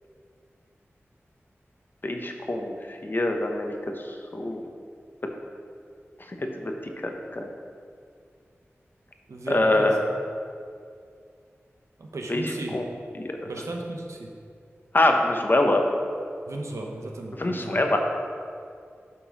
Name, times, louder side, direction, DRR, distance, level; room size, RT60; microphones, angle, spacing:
voice 1, 2.0-2.7 3.0-3.7 4.3-4.6 6.4-6.7 7.0-7.5 9.5-10.0 12.3-12.8 13.1-13.5 14.9-15.8 17.4-18.0, left 2 dB, 45° left, 3 dB, 0.8 m, -24 dB
voice 2, 9.3-10.0 12.0-12.8 13.4-14.3 16.5-17.8, right 2 dB, 85° right, 1 dB, 0.9 m, -34 dB
8.7 x 3.8 x 6.1 m, 2.3 s
wide cardioid pair, 50°, 5 cm